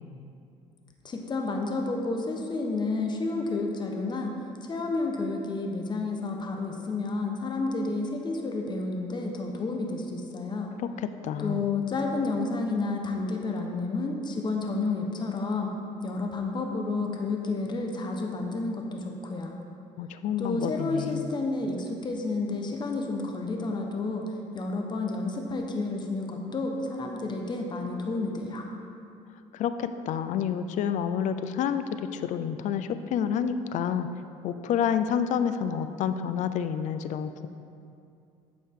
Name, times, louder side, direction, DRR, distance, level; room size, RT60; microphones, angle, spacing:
voice 1, 1.0-4.3 4.6-10.7 11.4-15.7 16.0-19.5 20.4-24.2 24.5-28.7, left 3 dB, 35° left, 2 dB, 0.9 m, -30 dB
voice 2, 11.2-11.6 20.0-21.2 29.5-34.1 34.4-37.5, left 8 dB, 65° left, 11 dB, 0.5 m, -29 dB
8.5 x 6.3 x 3.7 m, 2.5 s
cardioid pair, 90°, 14 cm